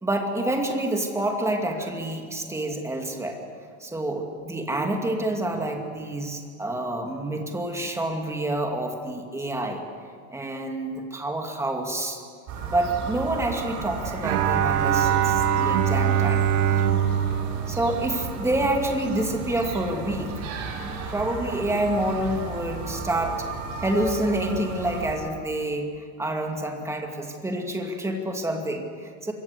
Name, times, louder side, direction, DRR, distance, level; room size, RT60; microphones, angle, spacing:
voice 1, 0.0-3.4 3.8-9.8 10.3-12.2 12.7-16.5 17.7-20.4 20.7-23.5 23.8-29.3, right 1 dB, 5° right, 2 dB, 2.5 m, -28 dB
sound 1, 12.5-25.2, right 4 dB, 40° right, 5.2 m, -34 dB
Bowed string instrument, 14.2-18.7, right 9 dB, 85° right, 2.4 m, -23 dB
25.5 x 23.0 x 8.2 m, 2.1 s
supercardioid pair, 160°, 45 cm